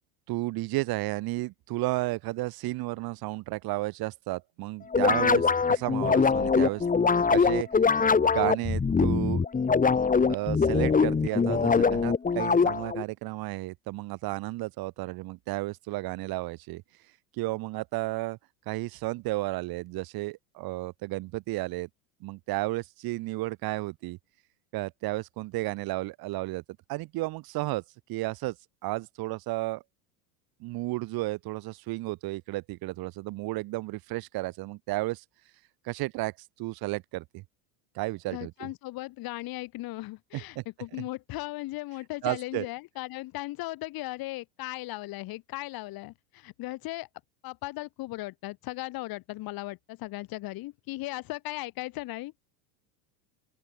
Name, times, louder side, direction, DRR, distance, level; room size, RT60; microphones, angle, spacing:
voice 1, 0.3-6.9 7.3-7.7 8.2-9.4 10.2-16.8 17.3-18.4 18.7-21.9 22.2-24.2 24.7-26.6 26.9-27.8 28.1-28.5 28.8-29.8 30.6-35.2 35.8-37.4 37.9-38.7 40.3-40.6 42.2-42.7, right 20 dB, 55° right, 4.6 m, -32 dB
sound 1, 4.9-13.0, left 5 dB, 20° left, 3.6 m, -23 dB
voice 2, 38.3-47.1 47.4-52.5, left 19 dB, 55° left, 5.3 m, -37 dB
open air
supercardioid pair, 110°, 43 cm